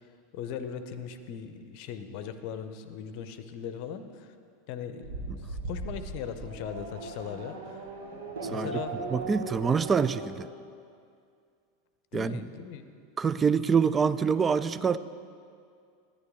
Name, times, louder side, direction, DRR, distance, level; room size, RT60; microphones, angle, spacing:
voice 1, 0.3-4.3 4.7-8.9 12.1-12.8, left 8 dB, 50° left, 10 dB, 0.6 m, -39 dB
Race car auto racing / Accelerating revving vroom, 5.0-10.3, right 3 dB, 65° right, 1.1 m, -38 dB
voice 2, 9.1-10.5 12.1-12.4 13.2-15.0, right 6 dB, 20° right, 14 dB, 0.3 m, -25 dB
12.5 x 9.8 x 3.6 m, 2.3 s
figure-of-eight pair, 85°, 0 cm